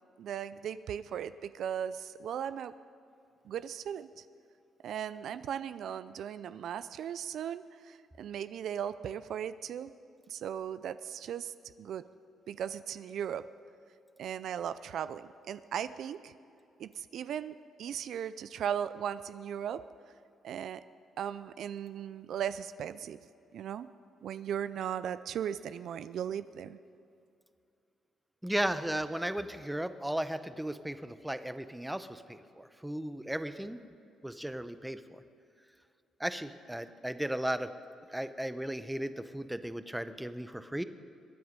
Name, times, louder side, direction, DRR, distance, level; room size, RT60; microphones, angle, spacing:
voice 1, 0.2-2.7 3.5-4.2 4.8-9.9 10.3-12.0 12.5-13.5 14.2-16.3 16.8-19.8 20.4-20.8 21.2-23.2 23.5-23.9 24.2-26.8, right 9 dB, 70° right, 14 dB, 0.4 m, -37 dB
voice 2, 28.4-33.8 34.2-35.2 36.2-37.7 38.1-40.8, right 1 dB, 5° right, 11 dB, 0.7 m, -35 dB
22.5 x 9.4 x 5.2 m, 2.6 s
cardioid pair, 90°, 0 cm